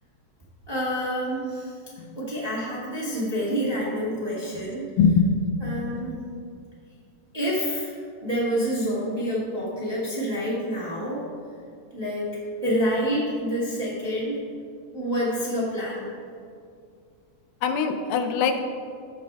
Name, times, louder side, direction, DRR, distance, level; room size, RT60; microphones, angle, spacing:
voice 1, 0.7-1.7 2.1-4.8 5.6-6.2 7.3-7.9 8.2-11.2 11.9-12.3 12.6-14.4 14.9-16.0, equal, 10° right, -8 dB, 1.4 m, -27 dB
voice 2, 5.0-5.3 5.6-6.2 17.6-18.6, left 5 dB, 90° left, 6 dB, 2.3 m, -23 dB
14.5 x 5.2 x 3.5 m, 2.2 s
omnidirectional pair, 3.7 m